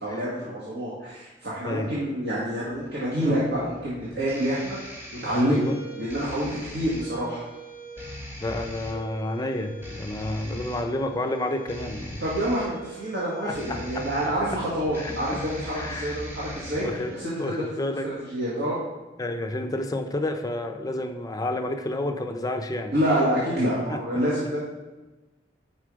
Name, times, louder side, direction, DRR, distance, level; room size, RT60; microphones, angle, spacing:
voice 1, 0.0-4.8 5.2-7.4 12.2-16.8 17.1-18.8 22.9-24.6, equal, 65° right, -8 dB, 1.6 m, -27 dB
sound 1, 2.7-17.2, equal, 10° right, 1.1 m, -40 dB
voice 2, 8.4-12.2 13.4-14.3 15.0-15.4 15.7-16.2 16.7-17.1 17.4-18.1 19.2-22.9 23.9-24.0, left 1 dB, 20° left, 5 dB, 0.5 m, -30 dB
6.0 x 4.3 x 4.8 m, 1.1 s
head